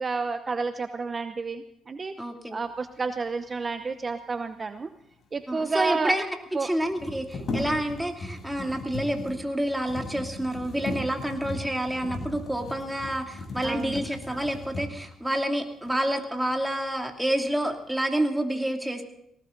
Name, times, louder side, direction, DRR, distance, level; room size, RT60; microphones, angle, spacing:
voice 1, 0.0-2.1 2.5-4.9 5.3-6.2 6.5-6.7 13.6-14.0, right 4 dB, 35° right, 9 dB, 0.8 m, -30 dB
voice 2, 2.2-2.6 5.5-6.3 6.6-19.0, right 1 dB, 5° right, 3 dB, 2.7 m, -28 dB
sound 1, 5.4-5.5 5.6-5.7 6.8-15.2 15.8-16.0 16.4-17.0 17.4-17.9, left 2 dB, 45° left, 7.4 m, -37 dB
19.0 x 19.0 x 3.9 m, 0.78 s
cardioid pair, 90°, 0 cm